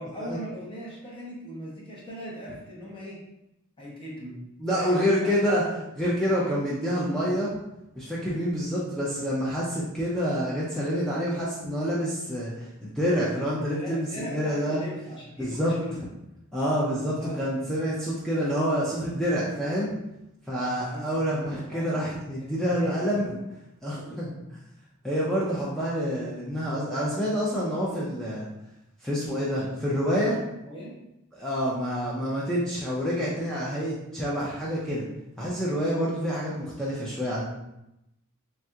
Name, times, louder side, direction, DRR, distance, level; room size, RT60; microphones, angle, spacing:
voice 1, 0.0-3.2 3.8-4.4 4.7-5.3 5.6-5.8 13.2-16.0 17.2-17.4 20.6-21.3 21.6-22.0 22.4-23.2 30.7-31.0, equal, 25° left, -5 dB, 0.8 m, -39 dB
voice 2, 4.6-5.6 6.0-7.6 7.9-14.8 15.4-15.7 16.5-19.9 20.5-23.4 23.8-24.4 25.0-28.5 29.0-30.4 31.3-35.0 35.4-37.4, equal, ahead, -7 dB, 0.4 m, -27 dB
3.3 x 2.7 x 2.3 m, 0.88 s
head